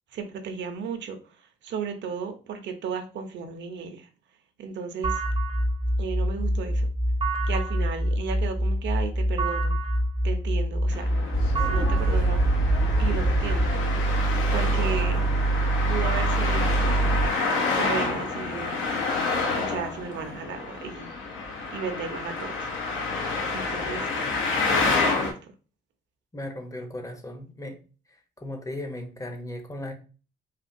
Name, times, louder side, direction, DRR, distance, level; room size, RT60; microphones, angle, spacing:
voice 1, 0.1-1.2 1.6-4.1 4.6-5.2 6.0-6.9 7.5-9.7 10.2-11.3 11.7-12.4 13.0-13.7 14.5-15.2 15.9-17.1 17.8-18.8 19.6-21.1 21.7-22.5 23.5-24.1 24.8-25.5, right 6 dB, 65° right, 0.6 m, -34 dB
sound 1, 5.0-13.7, equal, 25° right, 0.6 m, -26 dB
Traffic noise roadway noise, 10.9-25.3, left 3 dB, 80° left, 0.8 m, -29 dB
sound 2, 11.3-17.3, right 3 dB, 55° left, 1.6 m, -25 dB
voice 2, 26.3-27.8 28.4-29.9, left 1 dB, 15° left, 0.6 m, -36 dB
3.2 x 2.3 x 2.5 m
cardioid pair, 90°, 20 cm